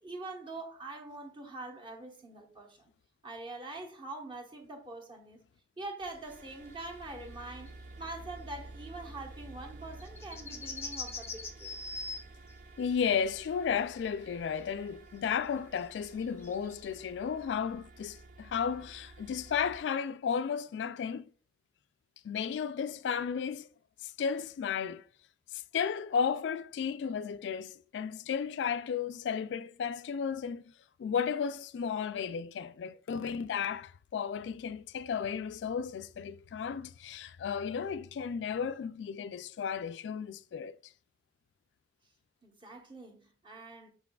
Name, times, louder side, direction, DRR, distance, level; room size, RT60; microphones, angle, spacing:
voice 1, 0.0-2.8 3.2-5.4 5.8-11.8 42.4-43.9, right 2 dB, 30° right, 1.0 m, -44 dB
sound 1, 6.0-12.6 12.9-13.4 13.7-15.0 15.3-16.9, left 3 dB, 15° left, 0.5 m, -44 dB
sound 2, 6.1-19.8, right 2 dB, 50° right, 0.4 m, -51 dB
voice 2, 12.8-21.3 22.2-23.7 24.0-25.0 25.5-30.6 31.0-40.8, left 7 dB, 90° left, 0.3 m, -34 dB
5.9 x 4.0 x 2.3 m
head